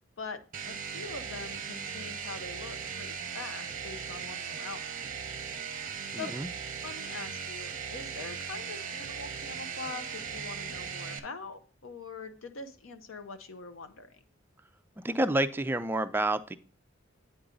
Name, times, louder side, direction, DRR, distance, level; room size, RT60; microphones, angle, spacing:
voice 1, 0.2-5.0 6.1-6.3 6.8-14.2, left 4 dB, 80° left, 9 dB, 0.7 m, -43 dB
sound 1, 0.5-11.2, right 6 dB, 45° right, 0.7 m, -38 dB
voice 2, 6.1-6.5 15.0-16.6, right 1 dB, 10° right, 10 dB, 0.3 m, -29 dB
8.9 x 3.9 x 3.8 m, 0.41 s
head